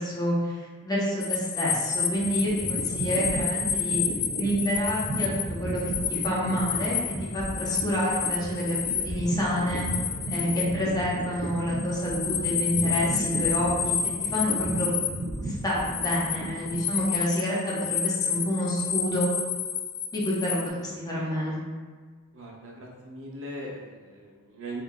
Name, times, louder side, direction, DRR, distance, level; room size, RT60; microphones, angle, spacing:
voice 1, 0.0-4.0 4.4-5.8 6.1-7.0 7.3-9.8 10.3-13.9 14.2-14.9 15.4-19.3 20.1-21.6, equal, 20° left, -6 dB, 0.9 m, -28 dB
sound 1, 1.2-15.1 15.5-20.7, left 7 dB, 55° left, 0.4 m, -30 dB
sound 2, 1.8-17.3, right 1 dB, 35° right, 0.4 m, -35 dB
voice 2, 22.3-24.8, right 1 dB, 65° right, -2 dB, 0.7 m, -40 dB
3.8 x 3.2 x 2.3 m, 1.5 s
head